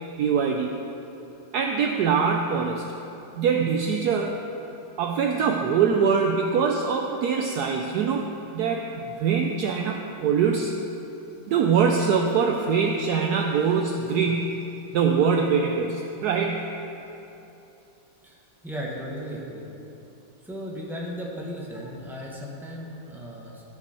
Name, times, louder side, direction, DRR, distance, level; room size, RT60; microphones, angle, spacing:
voice 1, 0.2-0.8 1.5-2.9 3.3-4.4 5.0-8.3 8.5-10.7 11.5-14.6 14.9-16.7, right 6 dB, 80° right, 2 dB, 0.9 m, -23 dB
voice 2, 18.2-19.6 20.4-23.6, equal, ahead, -3 dB, 0.8 m, -36 dB
13.5 x 6.1 x 4.3 m, 2.9 s
omnidirectional pair, 2.2 m